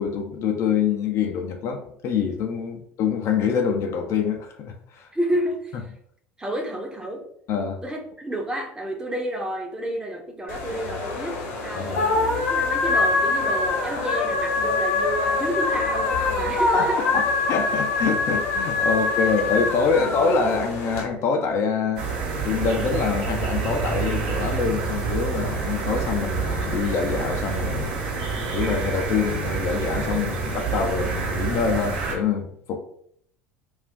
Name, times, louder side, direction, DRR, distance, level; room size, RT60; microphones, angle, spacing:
voice 1, 0.0-5.1 7.5-7.8 11.7-12.0 16.7-22.1 22.4-27.9 28.5-32.8, left 6 dB, 45° left, 3 dB, 0.5 m, -25 dB
voice 2, 5.1-5.8 6.4-7.3 7.8-11.3 11.6-17.0 19.9-20.1, right 1 dB, 10° right, 1 dB, 0.7 m, -30 dB
sound 1, 10.5-21.0, left 3 dB, 60° left, 0.9 m, -24 dB
sound 2, 22.0-32.1, right 5 dB, 60° right, 0.9 m, -27 dB
2.5 x 2.4 x 3.6 m, 0.66 s
figure-of-eight pair, 65°, 7 cm